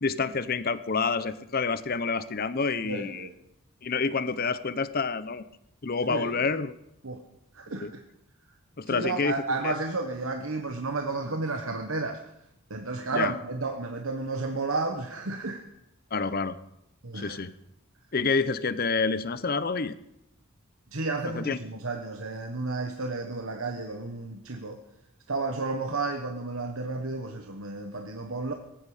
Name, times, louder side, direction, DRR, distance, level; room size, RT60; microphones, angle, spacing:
voice 1, 0.0-3.3 3.8-5.4 5.8-6.7 7.8-7.9 8.8-9.7 13.1-13.3 16.1-16.5 17.1-17.5 18.1-20.0 21.2-21.6, left 4 dB, 40° left, 14 dB, 0.7 m, -28 dB
voice 2, 2.8-3.3 6.1-6.5 7.0-7.2 7.5-8.0 8.9-12.2 12.7-15.6 17.0-17.4 20.9-24.8 25.3-28.5, right 3 dB, 70° right, 4 dB, 1.3 m, -32 dB
19.0 x 15.0 x 5.0 m, 0.82 s
head